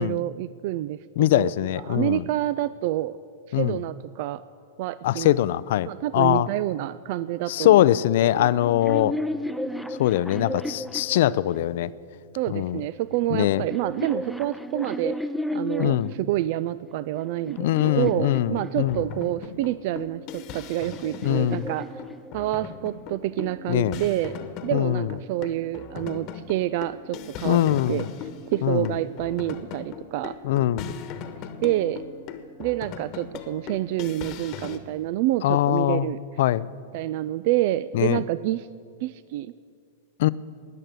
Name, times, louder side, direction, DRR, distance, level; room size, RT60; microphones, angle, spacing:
voice 1, 0.0-3.2 3.6-4.4 4.8-5.4 5.9-8.0 8.3-8.5 12.4-15.2 15.5-22.0 22.3-28.0 28.5-30.4 31.6-32.0 32.6-36.2 36.9-38.7 39.0-39.5, right 14 dB, 55° right, 16 dB, 0.3 m, -28 dB
voice 2, 1.2-2.2 3.5-3.8 5.0-6.5 7.5-9.2 10.0-11.9 12.5-12.8 13.3-13.6 15.8-16.1 17.6-19.0 21.2-21.7 23.7-24.0 24.7-25.1 27.4-28.0 28.6-28.9 30.4-30.9 35.4-36.1 36.4-36.7 37.9-38.2 40.2-40.3, left 13 dB, 65° left, 18 dB, 0.4 m, -22 dB
sound 1, 8.5-11.9 12.8-16.2 16.9-19.3 20.3-22.7, left 1 dB, ahead, 0.6 m, -34 dB
sound 2, 17.9-34.8, left 7 dB, 45° left, 1.2 m, -39 dB
19.0 x 6.6 x 9.3 m, 2.3 s
hypercardioid pair, 110°, 0 cm